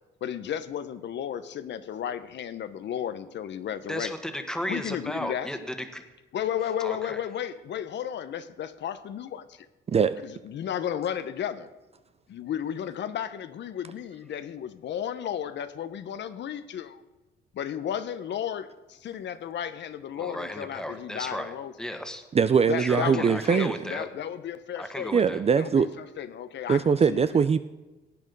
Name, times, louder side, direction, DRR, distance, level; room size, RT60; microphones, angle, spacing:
voice 1, 0.2-4.1 4.7-5.5 6.3-9.7 10.2-11.7 12.3-17.0 17.5-22.0 22.7-25.2 25.6-27.4, left 9 dB, 65° left, 0.8 m, -33 dB
voice 2, 3.9-6.0 6.8-7.2 20.2-21.5 21.8-22.2 22.8-24.1 24.7-25.4, equal, 5° left, 1.6 m, -34 dB
voice 3, 22.3-23.8 25.1-25.9 26.7-27.6, right 6 dB, 30° right, 0.5 m, -22 dB
17.5 x 8.8 x 5.3 m
cardioid pair, 90°, 20 cm